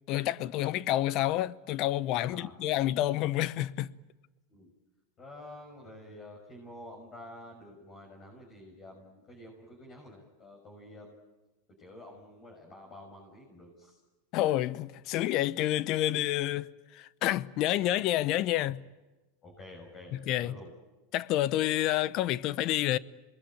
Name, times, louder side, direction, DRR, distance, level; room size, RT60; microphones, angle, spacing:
voice 1, 0.1-3.9 14.3-18.8 20.1-20.6 21.1-23.0, left 14 dB, 50° left, 0.8 m, -29 dB
voice 2, 5.2-11.2 11.8-14.0 19.4-20.7, left 1 dB, 35° left, 6.4 m, -49 dB
27.0 x 21.0 x 9.1 m
supercardioid pair, 120°, 0 cm